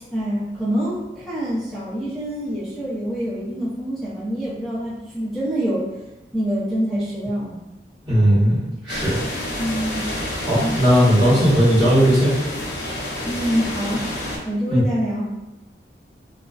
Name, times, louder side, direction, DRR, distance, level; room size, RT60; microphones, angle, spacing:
voice 1, 0.1-5.9 6.3-7.6 9.6-10.2 10.5-10.8 13.3-14.1 14.4-15.3, equal, ahead, -10 dB, 0.6 m, -25 dB
voice 2, 8.0-9.2 10.4-12.3 14.7-14.8, equal, 25° right, -12 dB, 1.3 m, -17 dB
sound 1, 8.9-14.4, left 1 dB, 80° left, 0.6 m, -29 dB
2.5 x 2.1 x 2.3 m, 1.0 s
head